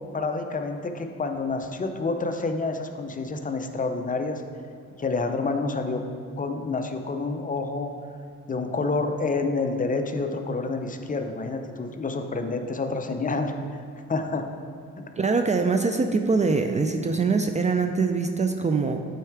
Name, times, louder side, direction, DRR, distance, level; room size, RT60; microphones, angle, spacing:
voice 1, 0.1-4.4 5.0-6.0 6.4-8.0 8.5-13.6 14.1-14.5 15.0-15.1, left 3 dB, 25° left, 6 dB, 0.5 m, -28 dB
voice 2, 15.2-19.0, right 4 dB, 25° right, 5 dB, 0.4 m, -23 dB
7.7 x 4.6 x 4.7 m, 2.2 s
cardioid pair, 90°, 30 cm